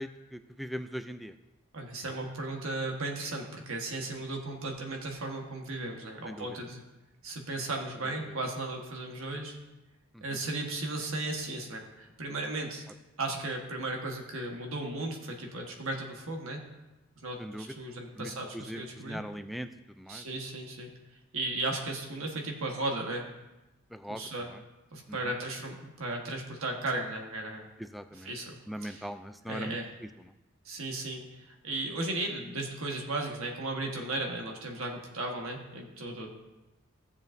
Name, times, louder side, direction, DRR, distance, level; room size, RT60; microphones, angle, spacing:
voice 1, 0.0-1.3 6.3-6.6 8.3-8.4 10.1-10.4 17.4-17.7 18.2-19.7 20.0-20.3 23.9-24.6 25.1-25.3 27.8-28.3 28.7-29.8 30.2-30.3, equal, ahead, 9 dB, 0.3 m, -40 dB
voice 2, 1.7-6.8 7.2-9.6 10.2-12.8 13.2-16.6 17.2-19.2 20.1-20.9 21.3-23.2 24.1-24.5 24.9-27.7 28.2-28.6 28.8-29.1 29.5-29.9 30.6-36.3, right 2 dB, 70° right, 1 dB, 1.4 m, -35 dB
15.5 x 7.1 x 2.6 m, 1.0 s
head